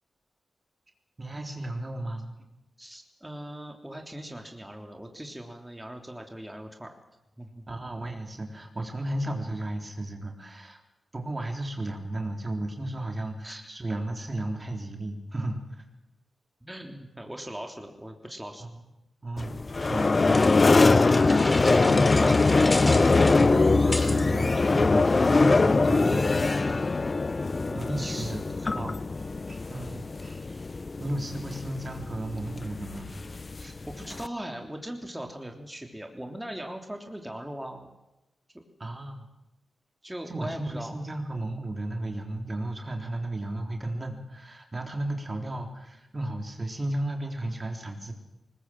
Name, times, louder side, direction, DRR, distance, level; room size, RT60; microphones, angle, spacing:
voice 1, 1.2-2.4 7.7-10.8 11.1-15.8 18.6-18.7 19.2-20.7 21.8-22.1 22.7-26.6 27.7-28.4 28.8-29.0 29.5-30.6 31.0-33.1 38.8-39.3 40.3-48.1, right 1 dB, 35° right, 3 dB, 3.8 m, -34 dB
voice 2, 2.8-6.9 7.4-7.8 13.4-13.6 16.6-18.6 20.2-20.3 22.1-22.7 28.0-29.0 33.6-37.9 40.0-41.0, right 1 dB, 10° right, 3 dB, 3.3 m, -40 dB
sound 1, 19.4-34.3, left 3 dB, 45° left, 0.7 m, -23 dB
sound 2, 20.3-24.3, left 2 dB, 25° left, 3.1 m, -32 dB
20.0 x 20.0 x 7.6 m, 0.95 s
supercardioid pair, 45°, 0 cm